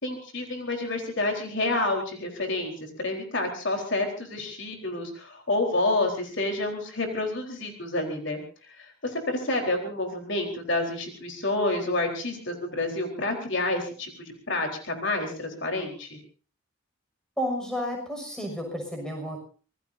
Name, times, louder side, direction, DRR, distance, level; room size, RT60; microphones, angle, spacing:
voice 1, 0.0-16.2, left 2 dB, 60° left, 3 dB, 4.1 m, -29 dB
voice 2, 17.4-19.4, equal, 5° left, 2 dB, 6.2 m, -31 dB
26.0 x 19.5 x 2.7 m, 0.40 s
head